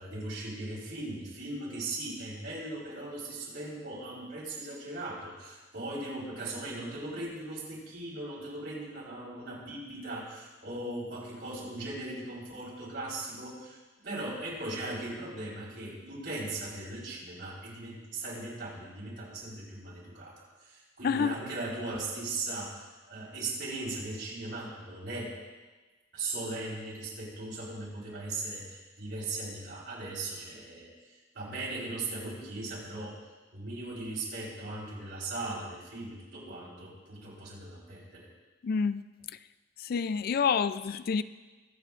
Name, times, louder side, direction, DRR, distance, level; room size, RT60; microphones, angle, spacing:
voice 1, 0.0-25.3 26.1-33.2 33.5-38.3, right 2 dB, 70° right, 4.2 m, -38 dB
voice 2, 21.0-21.4 38.6-39.0 39.8-41.2, left 6 dB, 55° left, 0.4 m, -28 dB
22.5 x 8.2 x 2.5 m
head